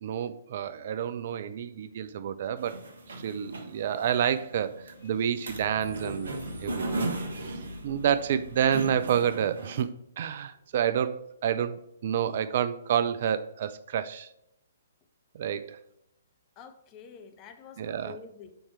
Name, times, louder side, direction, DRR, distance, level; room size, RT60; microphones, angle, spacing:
voice 1, 0.0-2.8 3.1-6.3 6.6-7.1 7.4-14.3 15.3-15.8 17.8-18.2, right 9 dB, 45° right, 0.4 m, -29 dB
sound 1, 2.1-2.2 2.4-10.6, left 1 dB, 55° left, 1.6 m, -48 dB
sound 2, 2.6-9.8, right 2 dB, 60° right, 1.1 m, -37 dB
voice 2, 16.6-18.6, left 6 dB, 25° left, 0.7 m, -48 dB
6.4 x 4.3 x 4.4 m
figure-of-eight pair, 125°, 0 cm